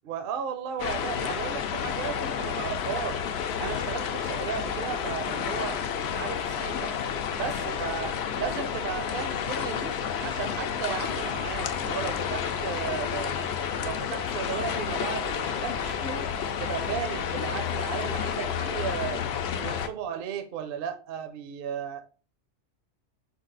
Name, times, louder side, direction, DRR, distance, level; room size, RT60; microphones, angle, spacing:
voice 1, 0.0-3.3 3.6-5.8 6.1-6.9 7.4-13.4 13.8-16.3 16.6-19.2 19.6-22.1, right 8 dB, 60° right, 0.7 m, -35 dB
sound 1, 0.8-19.9, left 7 dB, 65° left, 0.8 m, -30 dB
4.6 x 2.4 x 3.8 m
omnidirectional pair, 1.2 m